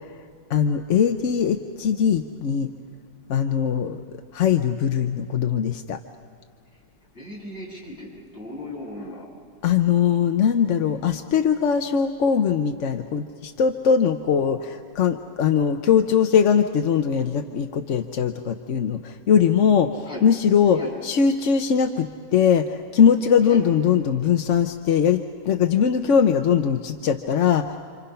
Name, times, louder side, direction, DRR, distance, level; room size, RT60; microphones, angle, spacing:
voice 1, 0.5-2.7 3.3-4.0 4.3-6.0 9.6-27.7, left 7 dB, 55° left, 6 dB, 0.9 m, -21 dB
voice 2, 7.1-9.3 10.7-11.0 20.0-20.3 20.7-20.9 23.5-23.6, left 1 dB, 30° left, -4 dB, 7.9 m, -37 dB
29.0 x 26.5 x 5.6 m, 2.2 s
omnidirectional pair, 1.9 m